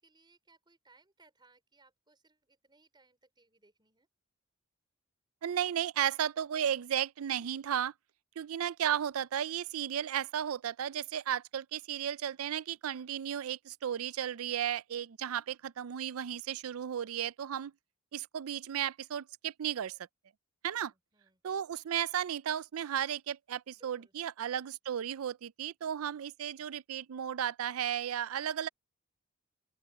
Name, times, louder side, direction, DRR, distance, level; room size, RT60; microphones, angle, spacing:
voice 1, 0.0-4.1 20.7-21.4 23.7-24.1, right 3 dB, 20° right, 4.8 m, -66 dB
voice 2, 5.4-7.9 8.4-17.7 18.1-20.0 20.6-20.9 21.4-28.7, right 9 dB, 85° right, 0.4 m, -34 dB
open air
head